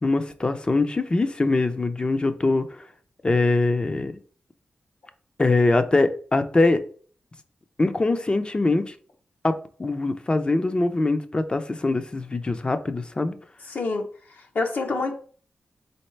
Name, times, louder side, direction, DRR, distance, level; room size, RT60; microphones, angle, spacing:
voice 1, 0.0-2.8 3.2-4.1 5.4-6.8 7.8-8.9 9.4-9.5 9.8-13.3, left 2 dB, 30° left, 0.6 m, -22 dB
voice 2, 13.7-14.0 14.3-15.1, left 3 dB, 65° left, 1.0 m, -27 dB
4.2 x 3.8 x 3.3 m
cardioid pair, 80°, 3 cm